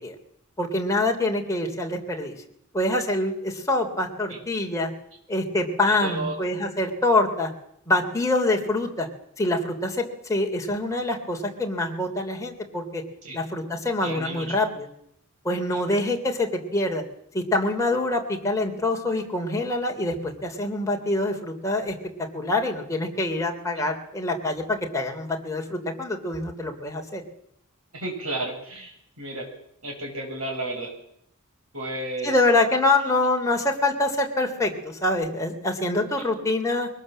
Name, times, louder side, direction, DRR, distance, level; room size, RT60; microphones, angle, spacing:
voice 1, 0.6-2.3 2.7-4.9 5.3-7.5 7.9-9.1 9.4-13.0 13.3-14.9 15.4-17.0 17.3-22.0 22.3-27.2 32.2-36.9, left 2 dB, 15° left, 1 dB, 3.1 m, -25 dB
voice 2, 5.9-6.3 13.2-13.4 14.0-14.6 15.7-15.8 27.9-29.5 29.8-30.9 31.7-32.4 36.2-36.3, right 2 dB, 70° right, 2 dB, 6.8 m, -32 dB
22.5 x 19.0 x 7.6 m, 0.75 s
head